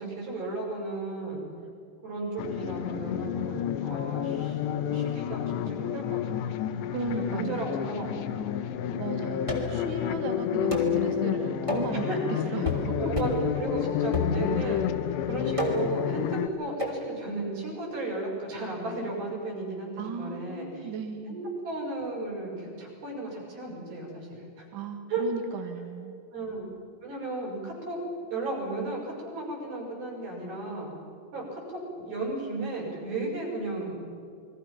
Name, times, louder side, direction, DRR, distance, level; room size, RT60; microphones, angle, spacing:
voice 1, 0.0-1.4 2.0-6.8 7.2-8.2 8.6-9.0 11.9-12.2 13.1-14.8 15.3-20.9 21.3-24.7 25.1-25.2 26.3-26.7 27.0-28.0 28.3-30.9 31.3-34.0, right 2 dB, 55° right, -3 dB, 7.8 m, -34 dB
sound 1, 2.4-16.5, left 10 dB, 80° left, 2.9 m, -30 dB
voice 2, 6.9-7.8 9.0-12.9 14.6-14.8 20.0-21.4 24.7-26.2, right 5 dB, 75° right, 5 dB, 1.1 m, -36 dB
sound 2, 9.5-9.8 10.7-11.0 11.7-12.0 12.6-12.9 13.2-13.5 14.1-14.7 15.6-16.0 16.8-17.0, left 1 dB, 10° right, 1.9 m, -30 dB
29.0 x 22.0 x 5.9 m, 2.3 s
omnidirectional pair, 5.2 m